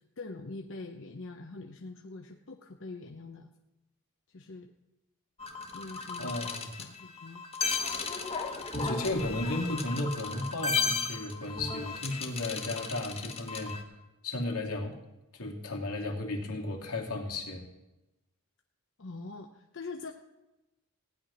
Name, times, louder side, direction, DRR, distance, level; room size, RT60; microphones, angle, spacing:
voice 1, 0.0-3.5 4.3-4.7 5.7-7.4 19.0-20.1, left 3 dB, 55° left, 3 dB, 0.8 m, -44 dB
sound 1, 5.4-13.8, left 4 dB, 25° left, 1.3 m, -35 dB
voice 2, 6.2-6.7 8.7-13.7 14.2-14.9 15.3-17.6, left 2 dB, 85° left, 0 dB, 2.7 m, -34 dB
16.5 x 5.9 x 9.8 m, 0.99 s
head